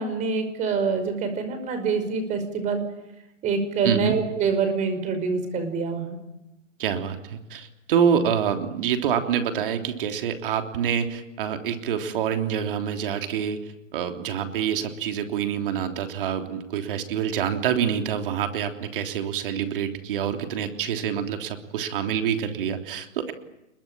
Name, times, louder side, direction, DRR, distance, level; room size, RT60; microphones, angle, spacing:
voice 1, 0.0-2.8 3.4-6.2, right 5 dB, 20° right, 8 dB, 5.3 m, -25 dB
voice 2, 3.8-4.2 6.8-23.3, right 8 dB, 45° right, 7 dB, 3.4 m, -26 dB
28.0 x 22.0 x 9.0 m, 0.88 s
hypercardioid pair, 150°, 38 cm